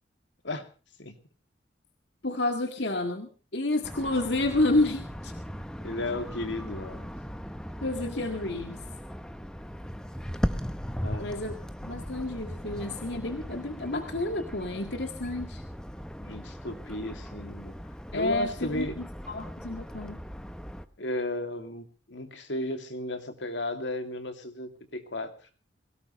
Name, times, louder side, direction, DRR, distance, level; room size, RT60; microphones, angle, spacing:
voice 1, 2.2-5.3 7.8-8.8 11.2-11.5 11.8-15.6 18.1-20.2, left 2 dB, 70° left, 5 dB, 2.0 m, -30 dB
sound 1, 3.8-20.8, equal, 5° left, 1.0 m, -38 dB
voice 2, 5.8-7.1 11.0-11.3 16.2-17.7 18.1-19.0 21.0-25.3, left 1 dB, 85° left, 6 dB, 2.7 m, -34 dB
23.5 x 17.5 x 3.2 m, 0.35 s
head